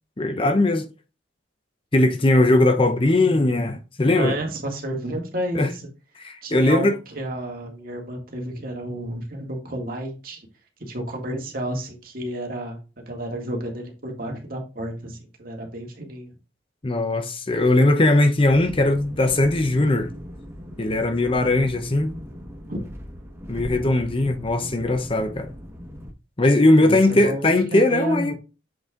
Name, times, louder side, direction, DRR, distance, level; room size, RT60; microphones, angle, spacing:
voice 1, 0.2-0.9 1.9-4.4 5.5-5.7 6.2-6.9 16.8-20.1 20.8-22.1 23.5-25.5 26.4-28.3, left 2 dB, 30° left, 0.7 m, -19 dB
voice 2, 4.1-5.9 6.4-10.5 10.8-16.3 22.7-22.8 26.8-28.3, right 1 dB, 50° right, 2.0 m, -31 dB
sound 1, 18.5-26.1, equal, 15° right, 1.2 m, -39 dB
7.7 x 4.1 x 3.6 m
head